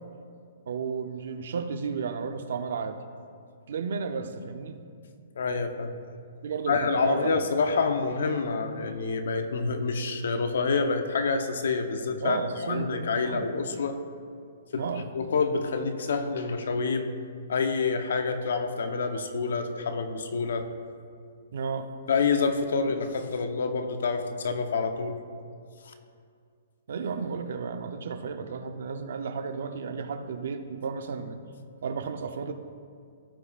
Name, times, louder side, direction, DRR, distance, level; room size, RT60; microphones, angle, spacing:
voice 1, 0.7-3.0 3.7-4.8 6.4-7.4 12.2-13.5 14.8-15.1 21.5-21.9 26.9-31.4 31.8-32.5, right 5 dB, 60° right, 8 dB, 0.6 m, -33 dB
voice 2, 5.4-6.0 6.7-14.0 14.7-14.8 15.1-17.1 17.5-20.7 22.1-25.2 25.9-26.0, left 4 dB, 70° left, 7 dB, 0.8 m, -27 dB
15.0 x 5.7 x 2.4 m, 2.3 s
hypercardioid pair, 175°, 0 cm